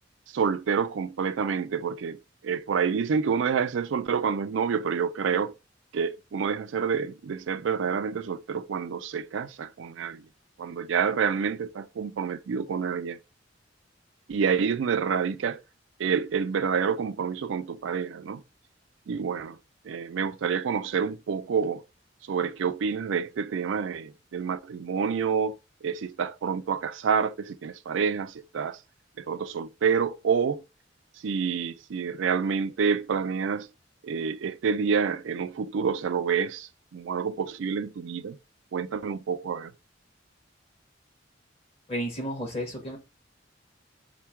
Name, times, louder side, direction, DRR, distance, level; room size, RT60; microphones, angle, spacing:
voice 1, 0.3-5.5 5.9-10.2 10.6-13.2 14.3-15.6 16.0-18.4 19.1-19.6 19.8-21.8 22.3-28.8 29.2-30.6 31.2-33.7 34.0-38.4 38.7-39.7, right 6 dB, 80° right, 0.4 m, -28 dB
voice 2, 41.9-43.0, equal, 30° left, 1.4 m, -32 dB
4.5 x 2.2 x 4.4 m
head